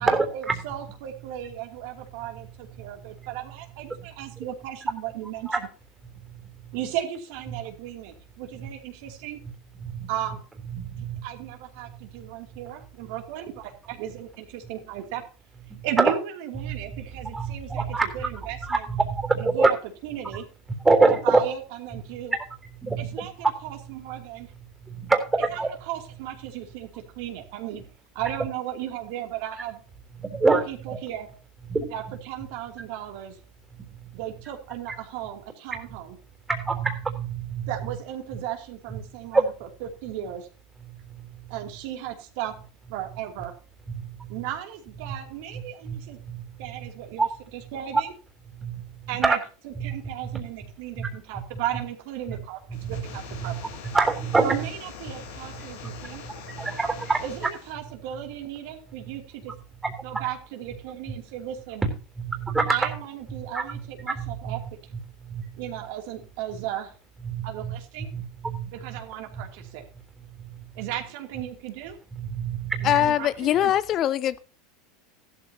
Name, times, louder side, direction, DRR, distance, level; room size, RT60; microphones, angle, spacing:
voice 1, 0.0-5.7 6.7-9.4 10.1-10.4 11.0-15.2 15.8-18.9 19.4-19.8 20.0-20.5 21.2-22.4 23.0-24.5 25.5-25.6 25.9-27.8 28.1-29.8 30.7-31.3 31.9-33.4 34.1-36.2 37.7-39.5 39.8-40.5 41.5-42.5 42.9-43.5 44.3-46.2 46.6-48.1 49.1-49.4 49.6-53.7 54.4-56.2 57.2-59.5 60.0-61.8 62.7-64.9 65.6-66.9 67.4-68.1 68.7-69.8 70.7-72.0 72.8-73.7, right 11 dB, 70° right, 2.7 m, -35 dB
voice 2, 10.8-11.2 16.0-16.1 16.6-17.0 17.3-18.1 18.7-19.7 20.8-21.4 22.3-22.4 22.8-23.3 24.9-25.7 30.2-31.0 31.7-31.9 36.5-37.7 39.3-39.4 44.0-44.4 45.1-45.2 45.5-46.4 47.2-47.3 48.6-48.9 49.2-49.4 49.8-49.9 50.3-50.4 51.0-51.1 52.7-53.0 53.4-53.6 53.9-54.6 55.8-57.2 59.8-60.2 61.8-62.8 63.5-63.8 64.2-64.6 65.2-65.5 67.2-67.7 68.1-68.7 70.4-70.6 72.2-72.9, right 3 dB, 15° right, 3.4 m, -25 dB
sound 1, 52.7-57.7, left 7 dB, 80° left, 3.5 m, -42 dB
voice 3, 72.8-74.4, left 11 dB, 45° left, 0.6 m, -22 dB
14.5 x 13.0 x 2.8 m
supercardioid pair, 110°, 0 cm